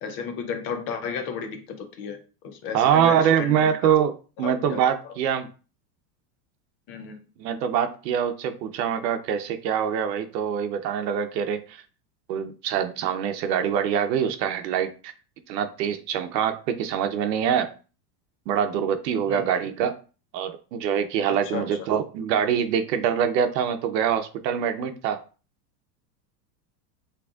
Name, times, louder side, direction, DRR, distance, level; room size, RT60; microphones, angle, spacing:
voice 1, 0.0-4.0 4.4-4.8 5.0-5.1 6.9-7.2 19.3-19.5 21.3-21.7, left 6 dB, 30° left, 6 dB, 0.4 m, -34 dB
voice 2, 2.7-4.1 4.4-5.5 7.4-11.8 12.3-14.9 15.5-17.7 18.5-20.0 20.3-25.2, right 8 dB, 85° right, 7 dB, 0.8 m, -24 dB
6.1 x 3.0 x 2.4 m, 0.35 s
supercardioid pair, 155°, 49 cm